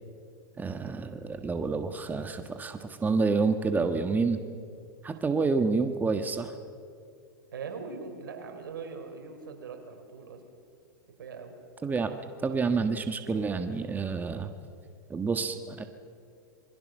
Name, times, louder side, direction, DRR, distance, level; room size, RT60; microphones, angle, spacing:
voice 1, 0.6-4.4 5.0-6.5 11.8-12.1 12.4-14.5 15.1-15.8, right 4 dB, 15° right, 7 dB, 1.4 m, -28 dB
voice 2, 7.5-10.4 11.2-11.5, right 5 dB, 85° right, 5 dB, 4.4 m, -41 dB
27.0 x 22.0 x 6.5 m, 2.3 s
hypercardioid pair, 115°, 11 cm